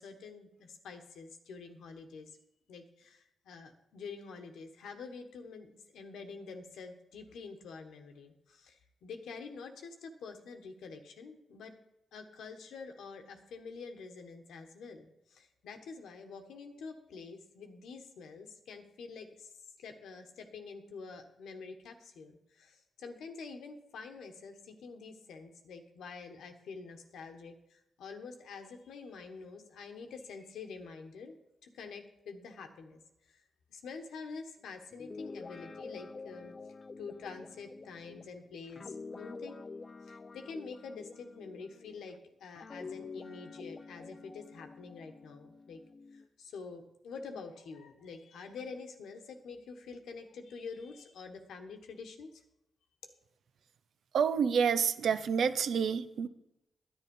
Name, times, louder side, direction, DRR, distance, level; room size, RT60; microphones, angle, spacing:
voice 1, 0.0-2.3 2.7-11.7 12.1-19.5 19.8-31.4 31.6-33.4 33.7-36.5 37.0-39.6 40.0-45.8 46.1-52.4, left 4 dB, 85° left, 6 dB, 1.3 m, -47 dB
Guitar, 34.9-42.1 42.6-46.3, left 4 dB, 40° left, 0.5 m, -47 dB
voice 2, 54.1-56.3, right 6 dB, 75° right, 12 dB, 0.6 m, -28 dB
10.5 x 9.2 x 5.4 m, 0.86 s
supercardioid pair, 55°, 0 cm